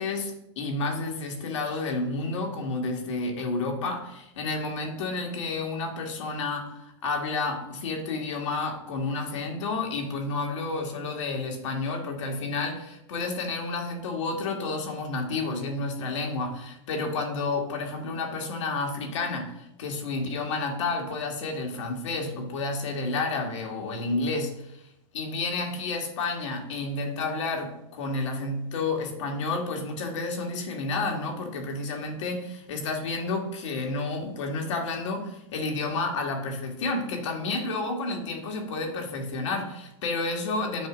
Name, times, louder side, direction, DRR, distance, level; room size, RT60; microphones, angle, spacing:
voice 1, 0.0-24.8 25.1-40.9, left 3 dB, 75° left, 2 dB, 1.5 m, -30 dB
7.7 x 2.8 x 6.0 m, 0.85 s
supercardioid pair, 140°, 16 cm